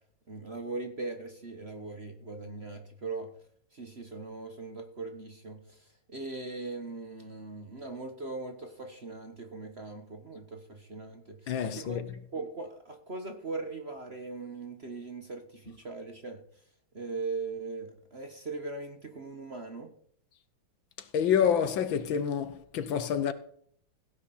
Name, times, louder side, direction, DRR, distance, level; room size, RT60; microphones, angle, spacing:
voice 1, 0.3-3.3 3.7-12.0 12.3-16.4 16.9-19.9, right 3 dB, 35° right, 1.2 m, -40 dB
voice 2, 11.5-12.1 21.1-23.3, left 8 dB, 70° left, 1.6 m, -27 dB
16.5 x 9.6 x 4.2 m
omnidirectional pair, 2.4 m